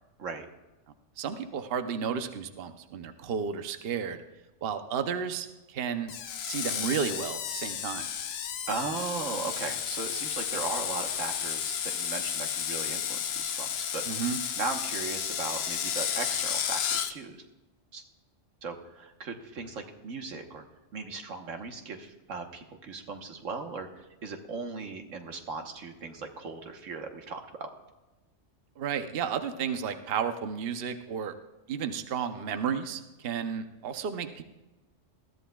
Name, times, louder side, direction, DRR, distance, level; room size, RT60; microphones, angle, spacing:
voice 1, 1.2-4.2 4.6-6.1 6.4-8.1 14.1-14.4 28.8-31.3 31.7-34.4, right 7 dB, 55° right, 8 dB, 0.9 m, -32 dB
Screech, 6.1-17.1, left 8 dB, 60° left, 0.8 m, -32 dB
voice 2, 8.7-14.0 14.6-17.4 17.9-18.0 18.6-20.6 20.9-27.7, right 4 dB, 90° right, 5 dB, 1.5 m, -37 dB
20.5 x 13.5 x 2.3 m, 1.1 s
omnidirectional pair, 1.3 m